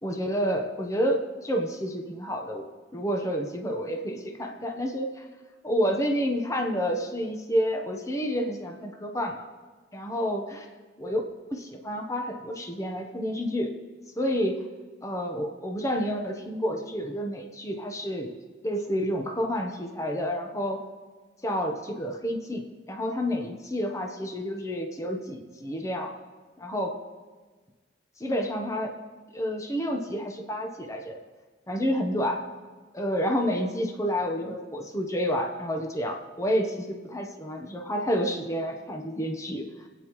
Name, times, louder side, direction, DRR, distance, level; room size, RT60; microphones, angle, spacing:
voice 1, 0.0-2.7 2.9-5.3 5.6-9.4 9.9-10.6 11.0-11.2 11.5-13.7 14.2-14.6 15.0-18.3 18.6-20.8 21.4-26.2 26.6-26.9 28.2-28.9 29.3-31.2 31.7-32.4 32.9-39.7, equal, 15° left, 3 dB, 1.0 m, -29 dB
25.0 x 9.1 x 3.1 m, 1.4 s
head